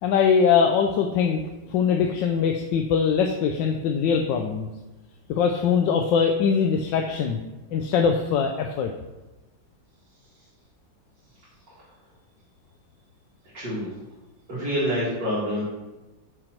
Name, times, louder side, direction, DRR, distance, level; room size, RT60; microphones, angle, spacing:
voice 1, 0.0-1.4 1.7-4.7 5.3-7.4 7.7-8.9, left 6 dB, 80° left, 4 dB, 1.3 m, -22 dB
voice 2, 13.5-13.9 14.5-15.6, equal, 65° right, -10 dB, 2.9 m, -26 dB
6.7 x 6.1 x 4.4 m, 1.1 s
omnidirectional pair, 2.0 m